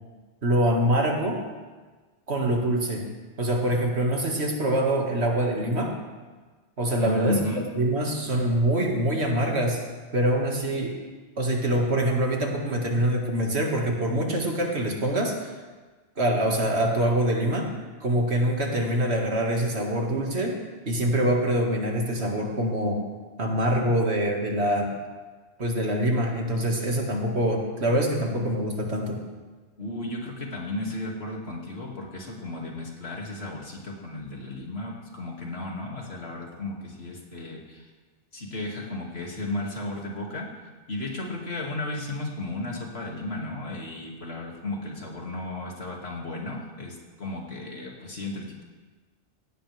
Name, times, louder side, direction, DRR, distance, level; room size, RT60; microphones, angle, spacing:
voice 1, 0.4-1.4 2.3-3.1 3.4-6.0 6.8-7.4 7.8-9.8 10.1-11.0 11.4-15.5 16.2-17.7 18.0-20.6 20.9-23.0 23.4-25.0 25.6-29.2, right 1 dB, 70° right, 0 dB, 2.4 m, -25 dB
voice 2, 7.0-7.6 29.8-37.9 38.3-40.5 40.9-48.6, left 2 dB, 65° left, -1 dB, 2.7 m, -34 dB
17.0 x 17.0 x 3.5 m, 1.4 s
omnidirectional pair, 1.1 m